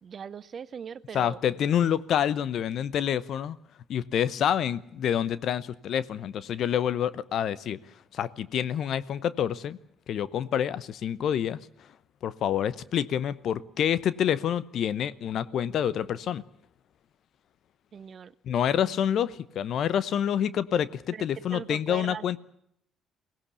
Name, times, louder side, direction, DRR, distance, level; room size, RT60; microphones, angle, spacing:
voice 1, 0.0-1.4 17.9-18.3 21.1-22.4, right 7 dB, 50° right, 17 dB, 0.9 m, -40 dB
voice 2, 1.1-3.6 3.9-7.8 8.1-9.8 10.1-11.6 12.2-16.4 18.4-22.4, left 9 dB, 60° left, 18 dB, 0.9 m, -27 dB
22.5 x 18.0 x 8.3 m, 0.76 s
hypercardioid pair, 50°, 0 cm